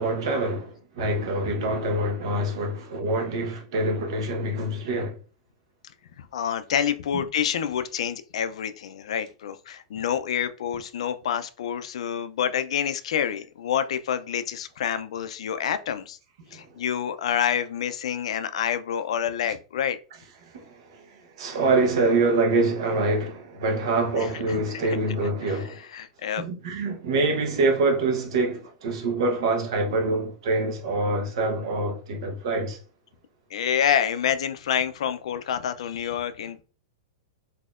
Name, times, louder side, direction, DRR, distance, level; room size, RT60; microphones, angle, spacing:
voice 1, 0.0-5.2 7.1-7.2 16.5-16.8 20.4-25.8 26.4-32.8, right 2 dB, 55° right, 0.9 m, -25 dB
voice 2, 6.2-16.2 16.5-20.0 24.3-24.4 24.8-25.0 25.9-26.4 33.5-36.6, left 9 dB, 70° left, 0.4 m, -27 dB
4.1 x 2.7 x 2.4 m
supercardioid pair, 175°, 3 cm